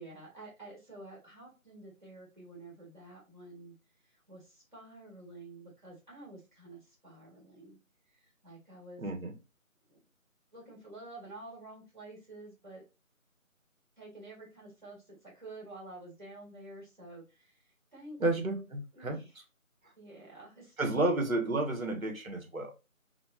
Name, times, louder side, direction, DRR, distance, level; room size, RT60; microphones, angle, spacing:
voice 1, 0.0-3.7 4.3-7.8 8.1-9.1 9.9-10.0 10.5-12.8 14.0-18.6 18.9-19.3 20.0-20.9, right 2 dB, 35° right, -5 dB, 1.7 m, -50 dB
voice 2, 9.0-9.3 18.2-19.2 20.8-22.7, right 2 dB, 70° right, 3 dB, 1.3 m, -31 dB
5.1 x 2.3 x 2.3 m, 0.28 s
figure-of-eight pair, 175°, 42 cm